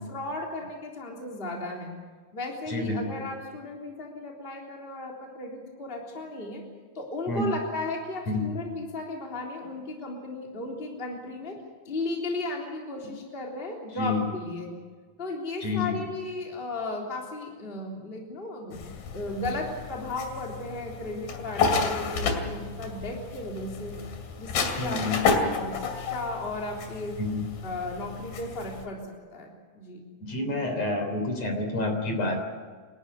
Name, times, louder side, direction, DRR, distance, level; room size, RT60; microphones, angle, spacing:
voice 1, 0.1-1.9 2.3-6.6 6.9-11.6 11.8-14.7 15.2-18.8 19.1-24.0 24.4-27.2 27.6-29.0 29.3-29.5 29.7-30.0, left 2 dB, 15° left, -1 dB, 3.3 m, -35 dB
voice 2, 2.7-3.0 7.3-7.6 8.3-8.5 13.0-13.2 13.9-14.3 15.6-16.0 24.8-25.2 27.2-27.4 30.2-32.4, left 2 dB, 45° left, 5 dB, 4.4 m, -29 dB
sound 1, 18.7-28.9, left 4 dB, 70° left, 4.2 m, -31 dB
29.0 x 13.0 x 9.8 m, 1.5 s
omnidirectional pair, 4.4 m